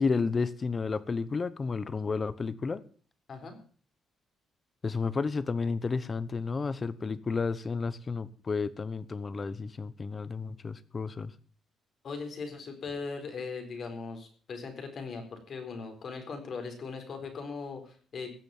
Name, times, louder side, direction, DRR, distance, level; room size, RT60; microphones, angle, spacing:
voice 1, 0.0-2.8 4.8-11.3, left 4 dB, 35° left, 16 dB, 1.0 m, -31 dB
voice 2, 12.0-18.3, left 4 dB, 55° left, 5 dB, 4.3 m, -39 dB
17.0 x 7.0 x 7.3 m, 0.44 s
cardioid pair, 90°, 0 cm